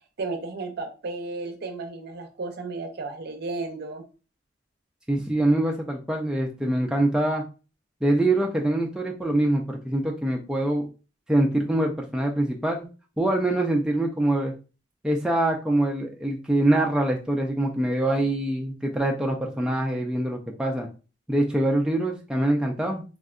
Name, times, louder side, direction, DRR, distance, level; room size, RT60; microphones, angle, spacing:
voice 1, 0.2-4.0, right 3 dB, 55° right, 6 dB, 0.5 m, -33 dB
voice 2, 5.1-7.4 8.0-10.9 11.3-12.9 13.2-14.5 15.0-20.9 21.3-23.0, right 1 dB, 5° right, 0 dB, 0.3 m, -24 dB
3.5 x 2.1 x 2.4 m, 0.33 s
head